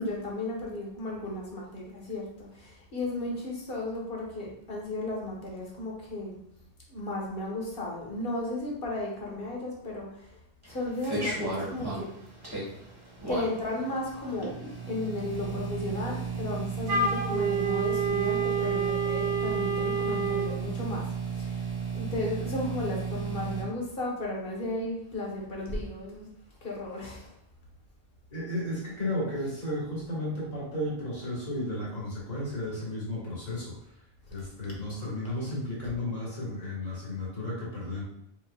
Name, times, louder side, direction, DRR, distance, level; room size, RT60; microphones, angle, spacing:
voice 1, 0.0-6.4 6.9-10.1 10.7-12.1 13.3-14.5 14.9-21.0 21.3-26.3 26.6-27.3, left 2 dB, 65° left, -2 dB, 1.3 m, -34 dB
sound 1, 10.6-23.6, right 5 dB, 25° right, 1.2 m, -35 dB
Wind instrument woodwind instrument, 16.9-20.5, right 5 dB, 80° right, 0.8 m, -28 dB
voice 2, 28.3-33.8 34.3-38.0, left 1 dB, 40° left, -6 dB, 1.6 m, -33 dB
4.3 x 3.9 x 2.3 m, 0.76 s
omnidirectional pair, 1.0 m